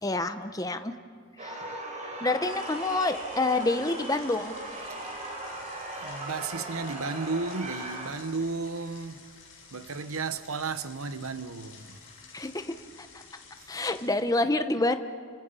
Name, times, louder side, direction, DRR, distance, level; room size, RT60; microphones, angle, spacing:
voice 1, 0.0-0.9 1.4-1.6 2.2-4.5 12.3-13.1 13.7-15.0, left 2 dB, 15° left, 0.8 m, -28 dB
sound 1, 1.4-8.1, right 2 dB, 35° right, 4.2 m, -38 dB
sound 2, 2.4-14.1, left 5 dB, 60° left, 7.6 m, -51 dB
voice 2, 6.0-9.2 9.7-12.0, right 4 dB, 75° right, 1.0 m, -33 dB
29.5 x 25.5 x 5.6 m
head